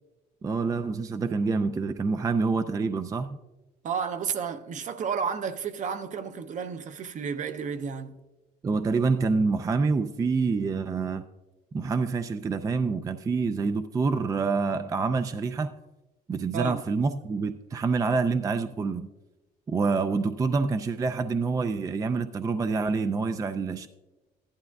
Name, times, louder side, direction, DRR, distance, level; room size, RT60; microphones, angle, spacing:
voice 1, 0.4-3.4 8.6-11.2 11.7-15.7 16.3-19.1 19.7-23.9, right 4 dB, 20° right, 0.3 m, -27 dB
voice 2, 3.8-8.2 16.5-16.8, right 6 dB, 45° right, 0.7 m, -32 dB
14.5 x 11.5 x 2.3 m
cardioid pair, 110°, 17 cm